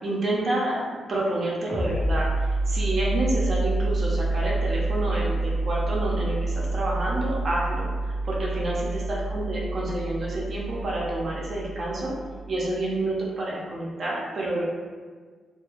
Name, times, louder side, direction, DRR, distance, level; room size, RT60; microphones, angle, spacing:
voice 1, 0.0-12.1 12.5-14.6, right 1 dB, 50° right, -5 dB, 0.5 m, -29 dB
sound 1, 1.7-13.0, right 2 dB, 15° left, 0.7 m, -28 dB
2.3 x 2.2 x 2.9 m, 1.5 s
cardioid pair, 85°, 0 cm